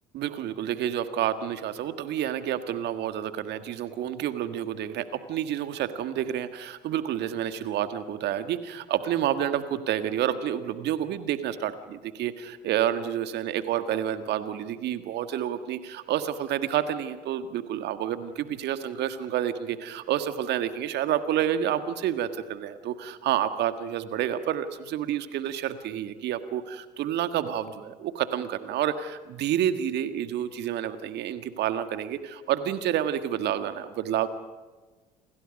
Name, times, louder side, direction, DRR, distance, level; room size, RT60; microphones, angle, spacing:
voice 1, 0.1-34.3, right 10 dB, 55° right, 10 dB, 1.7 m, -29 dB
28.5 x 26.5 x 5.4 m, 1.3 s
figure-of-eight pair, 60°, 21 cm